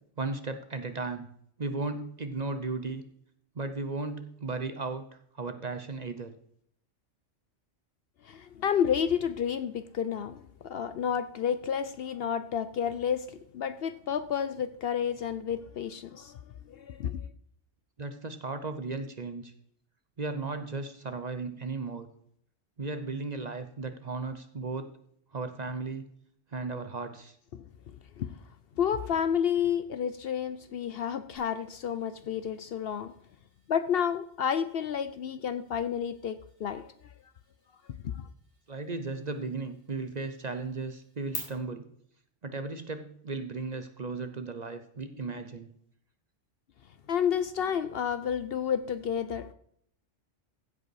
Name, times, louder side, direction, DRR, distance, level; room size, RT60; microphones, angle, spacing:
voice 1, 0.2-1.3 1.6-3.0 3.5-5.0 5.3-6.3 18.0-19.5 20.2-22.1 22.8-24.9 25.3-26.1 26.5-27.3 38.7-41.9 42.4-45.7, right 3 dB, 40° right, 9 dB, 0.8 m, -35 dB
voice 2, 8.2-16.4 16.7-17.3 27.5-27.6 28.2-28.3 28.8-33.1 33.7-36.9 38.0-38.3 47.1-49.5, left 8 dB, 60° left, 13 dB, 0.7 m, -30 dB
sound 1, 31.4-41.4, left 4 dB, 80° left, 5.3 m, -52 dB
15.5 x 5.4 x 4.7 m, 0.67 s
omnidirectional pair, 1.2 m